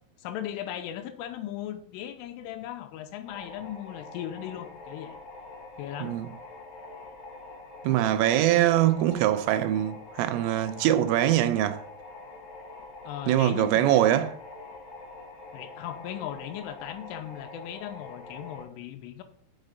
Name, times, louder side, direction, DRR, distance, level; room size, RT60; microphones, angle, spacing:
voice 1, 0.2-5.2 5.8-6.2 13.0-14.3 15.5-19.2, left 11 dB, 85° left, 3.3 m, -38 dB
sound 1, 3.3-18.6, left 3 dB, 70° left, 1.8 m, -45 dB
voice 2, 7.8-11.8 13.3-14.3, right 12 dB, 85° right, 3.3 m, -23 dB
6.5 x 6.2 x 6.5 m
omnidirectional pair, 5.9 m